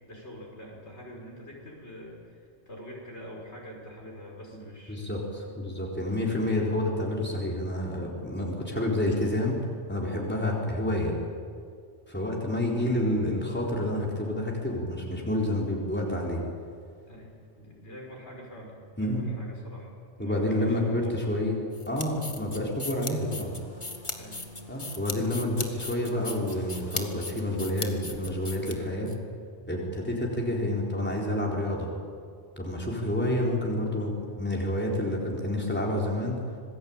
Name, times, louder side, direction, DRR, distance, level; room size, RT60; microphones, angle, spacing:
voice 1, 0.1-5.2 17.1-21.4 24.1-24.4 30.0-30.2 33.0-33.2, equal, 65° left, -1 dB, 6.0 m, -45 dB
voice 2, 4.9-9.6 9.9-11.1 12.1-16.4 19.0-19.3 20.2-21.5 21.9-23.5 24.7-29.1 29.7-31.9 32.6-36.4, left 1 dB, 10° left, -2 dB, 4.2 m, -29 dB
sound 1, 21.7-29.1, left 2 dB, 25° left, 1.8 m, -38 dB
sound 2, 22.9-28.7, left 1 dB, 20° right, 6.8 m, -50 dB
26.5 x 20.0 x 8.9 m, 2.2 s
omnidirectional pair, 1.2 m